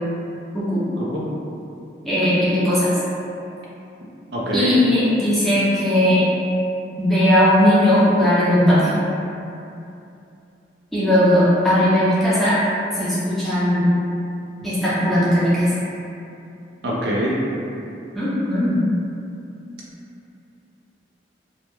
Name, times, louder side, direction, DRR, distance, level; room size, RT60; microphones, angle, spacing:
voice 1, 2.1-2.9 4.5-6.3 7.0-8.9 10.9-12.6 13.0-13.8 14.6-15.7 18.1-18.8, left 1 dB, ahead, -11 dB, 0.5 m, -18 dB
voice 2, 4.3-4.8 16.8-17.3, right 1 dB, 65° right, -5 dB, 0.4 m, -23 dB
2.2 x 2.0 x 2.9 m, 2.7 s
head